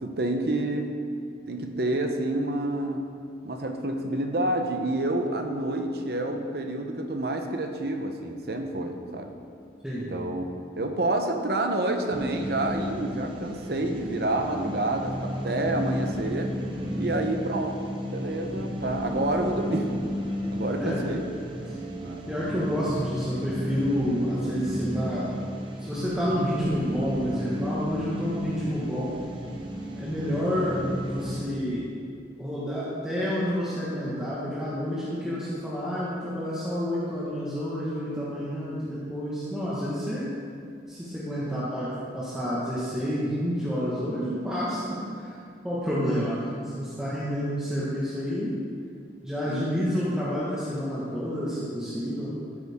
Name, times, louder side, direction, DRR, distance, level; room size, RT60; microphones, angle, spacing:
voice 1, 0.0-0.9 1.5-3.1 3.4-9.3 10.1-10.5 10.8-16.5 16.9-20.0 20.5-21.3 22.0-22.2 49.5-49.7, right 1 dB, 60° right, 4 dB, 0.9 m, -28 dB
sound 1, 12.1-31.4, equal, 25° right, 1.0 m, -33 dB
voice 2, 22.3-25.3 25.8-29.1 30.0-30.8 31.1-31.9 32.4-40.3 40.9-45.4 45.6-48.6 49.2-52.6, equal, 5° right, -10 dB, 1.5 m, -29 dB
13.0 x 8.4 x 3.6 m, 2.3 s
head